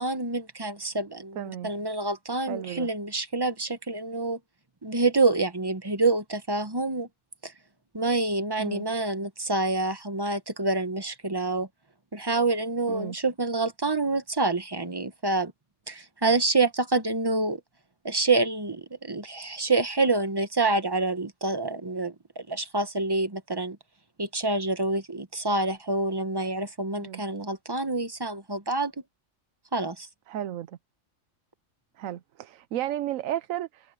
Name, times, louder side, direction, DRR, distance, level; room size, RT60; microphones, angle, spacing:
voice 1, 0.0-4.4 4.8-7.1 7.4-7.5 7.9-11.7 12.1-15.5 15.9-17.6 18.0-23.8 24.2-28.9 29.7-30.1, right 3 dB, 20° right, 1.0 m, -27 dB
voice 2, 1.4-1.7 2.5-2.9 8.6-8.8 12.9-13.2 27.0-27.2 30.3-30.7 32.0-33.9, right 12 dB, 85° right, 1.1 m, -33 dB
omnidirectional pair, 1.4 m